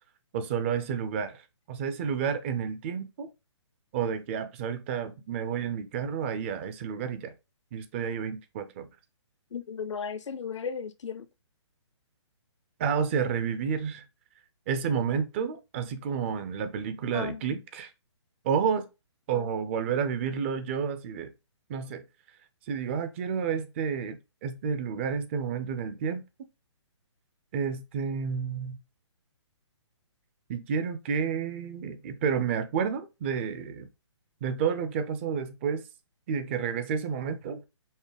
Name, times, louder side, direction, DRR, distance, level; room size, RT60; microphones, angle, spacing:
voice 1, 0.3-1.4 1.7-3.3 3.9-7.3 7.7-8.9 12.8-14.1 14.7-17.9 18.4-18.9 19.3-21.3 21.7-22.0 22.7-26.2 27.5-28.8 30.5-33.9 34.4-35.9 36.3-37.6, right 6 dB, 25° right, 0.4 m, -30 dB
voice 2, 9.5-11.3 17.1-17.4 19.3-19.5, left 6 dB, 75° left, 0.6 m, -35 dB
5.3 x 2.1 x 3.3 m
hypercardioid pair, 150°, 15 cm